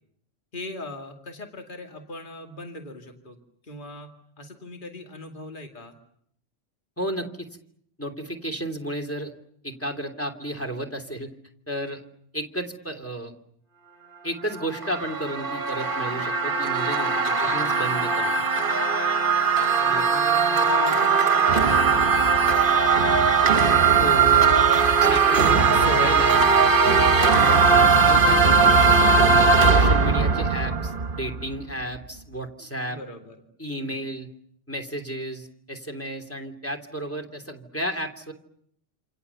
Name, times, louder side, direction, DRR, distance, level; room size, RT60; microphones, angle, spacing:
voice 1, 0.5-3.4 3.6-4.1 4.4-6.0 17.4-17.8 19.6-23.3 27.6-28.3 29.5-29.8 32.9-33.4 33.8-34.0, left 1 dB, 45° left, 3 dB, 2.4 m, -41 dB
voice 2, 7.0-7.5 8.0-9.3 9.6-11.3 11.7-12.0 12.3-13.3 14.2-18.4 19.9-20.1 24.0-24.6 25.0-26.8 27.3-28.7 29.1-33.0 33.6-34.3 34.7-38.3, right 1 dB, 10° left, 3 dB, 2.9 m, -33 dB
sound 1, 14.6-31.6, right 5 dB, 50° right, 1.4 m, -19 dB
28.0 x 27.0 x 7.0 m, 0.70 s
omnidirectional pair, 1.2 m